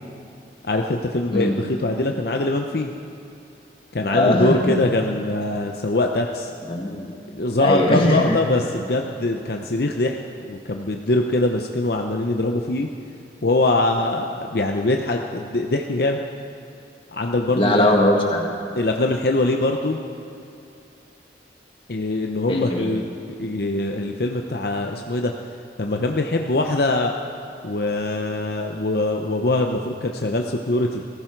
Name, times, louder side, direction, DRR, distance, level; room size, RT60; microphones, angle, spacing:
voice 1, 0.6-2.9 3.9-6.5 7.3-10.2 10.5-12.9 13.4-16.2 17.1-17.9 18.8-20.0 21.9-25.3 25.8-27.1 27.6-31.0, left 2 dB, 60° left, 3 dB, 0.7 m, -23 dB
voice 2, 4.1-4.8 6.7-7.1 7.6-8.4 17.6-18.5 22.5-22.9, left 1 dB, 30° left, 0 dB, 1.8 m, -20 dB
19.5 x 15.0 x 4.6 m, 2.7 s
head